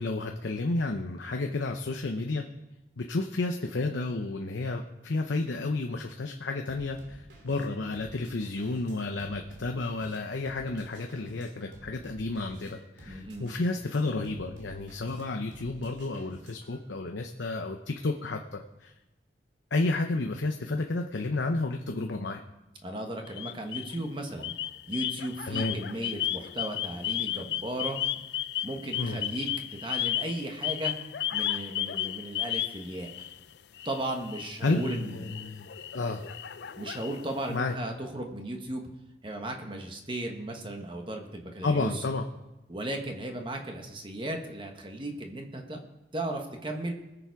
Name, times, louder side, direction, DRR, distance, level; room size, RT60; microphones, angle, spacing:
voice 1, 0.0-2.4 3.0-18.9 19.7-22.4 25.5-25.8 28.9-29.2 34.6-35.7 35.9-36.2 37.5-37.8 41.6-42.3, left 2 dB, 85° left, 4 dB, 0.8 m, -31 dB
sound 1, 6.7-16.8, equal, 80° right, 2.6 m, -51 dB
voice 2, 13.1-13.5 22.8-24.5 24.9-28.0 28.6-30.9 31.3-33.1 33.8-35.3 36.8-38.9 39.2-42.0 42.7-45.8 46.1-46.9, right 1 dB, 25° right, 3 dB, 1.2 m, -36 dB
sound 2, 23.3-24.0 24.4-33.4 33.8-37.5, left 12 dB, 65° left, 0.4 m, -34 dB
20.5 x 7.1 x 4.7 m, 1.0 s
head